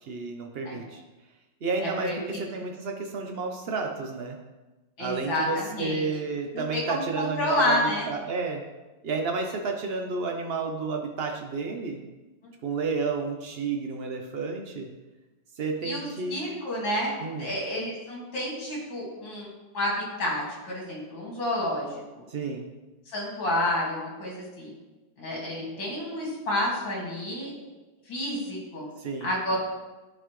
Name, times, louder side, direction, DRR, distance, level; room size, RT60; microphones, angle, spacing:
voice 1, 0.0-1.0 1.6-4.4 5.0-8.6 9.0-12.0 12.6-14.9 15.6-16.4 17.2-17.5 22.3-22.7 29.0-29.3, right 4 dB, 80° right, 3 dB, 0.5 m, -31 dB
voice 2, 1.8-2.6 5.0-6.1 6.5-8.1 15.8-17.1 17.4-19.5 19.7-21.9 23.1-24.7 25.2-27.5 28.1-28.9 29.2-29.6, left 1 dB, 85° left, -3 dB, 2.9 m, -29 dB
11.5 x 4.1 x 3.2 m, 1.1 s
omnidirectional pair, 2.0 m